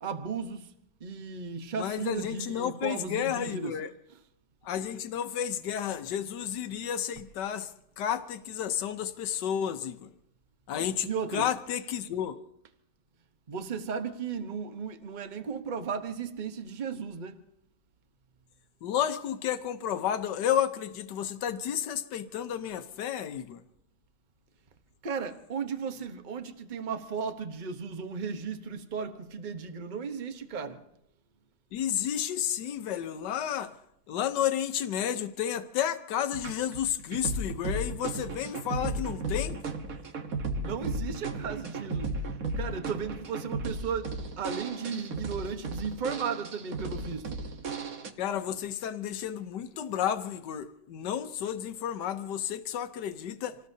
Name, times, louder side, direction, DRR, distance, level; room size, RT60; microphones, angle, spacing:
voice 1, 0.0-0.7 1.0-3.7 11.0-11.5 13.5-17.4 25.0-30.8 40.6-42.2 42.6-44.1 44.4-47.4, right 6 dB, 35° right, 1.0 m, -35 dB
voice 2, 1.7-3.9 4.6-7.7 8.0-10.1 10.7-12.4 18.8-23.6 31.7-33.7 34.1-39.6 48.2-53.6, left 9 dB, 85° left, 1.5 m, -31 dB
sound 1, 36.3-48.1, right 2 dB, 60° right, 1.6 m, -35 dB
27.0 x 19.0 x 2.8 m
omnidirectional pair, 1.8 m